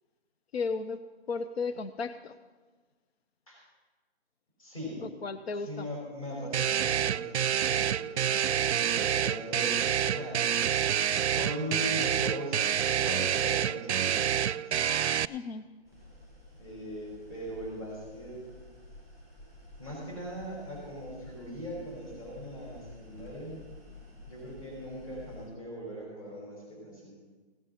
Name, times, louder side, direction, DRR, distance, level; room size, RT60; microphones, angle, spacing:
voice 1, 0.5-1.0 1.3-2.3 5.2-5.9 15.3-15.7, left 4 dB, 70° left, 11 dB, 0.7 m, -34 dB
voice 2, 4.6-5.0 5.6-10.4 11.3-14.8 16.5-18.5 19.8-23.6 24.3-27.1, equal, 30° left, -3 dB, 5.5 m, -40 dB
sound 1, 6.5-15.2, right 9 dB, 90° right, 0.5 m, -28 dB
sound 2, 15.8-25.4, left 1 dB, 15° left, 5.2 m, -51 dB
16.0 x 8.8 x 5.6 m, 1.3 s
hypercardioid pair, 175°, 33 cm